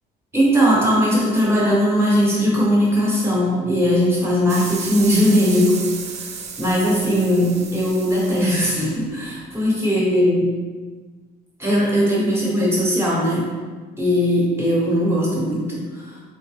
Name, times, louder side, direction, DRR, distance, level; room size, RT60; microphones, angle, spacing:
voice 1, 0.3-6.2 6.6-10.5 11.6-13.5 14.0-16.2, equal, 15° right, -5 dB, 1.0 m, -19 dB
sound 1, 4.5-9.5, right 5 dB, 40° right, 0.4 m, -34 dB
3.8 x 2.1 x 3.2 m, 1.4 s
cardioid pair, 110°, 17 cm